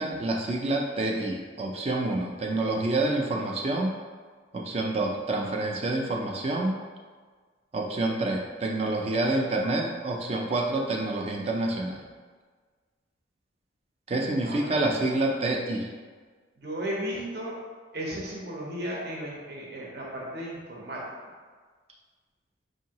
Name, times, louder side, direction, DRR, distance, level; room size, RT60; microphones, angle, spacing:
voice 1, 0.0-4.0 4.5-6.8 7.7-12.0 14.1-15.9, right 2 dB, 30° right, 1 dB, 0.4 m, -28 dB
voice 2, 14.4-14.8 16.6-17.5 17.9-21.0 21.3-21.4, equal, 55° right, -3 dB, 0.8 m, -35 dB
4.6 x 2.8 x 2.8 m, 1.5 s
head